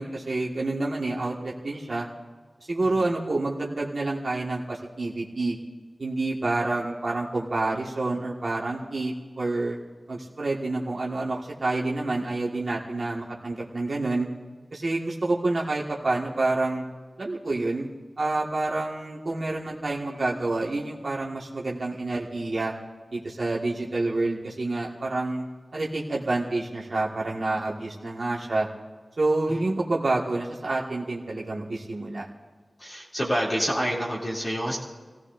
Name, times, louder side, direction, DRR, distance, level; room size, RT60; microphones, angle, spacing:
voice 1, 0.0-2.1 2.7-5.6 6.0-9.8 10.1-14.3 14.7-16.8 17.2-17.9 18.2-22.7 23.1-25.5 25.7-28.7 29.2-32.2, right 2 dB, 60° right, -4 dB, 1.8 m, -28 dB
voice 2, 32.8-34.8, equal, 30° left, -6 dB, 2.9 m, -27 dB
27.5 x 16.0 x 2.6 m, 1.4 s
wide cardioid pair, 80°, 0 cm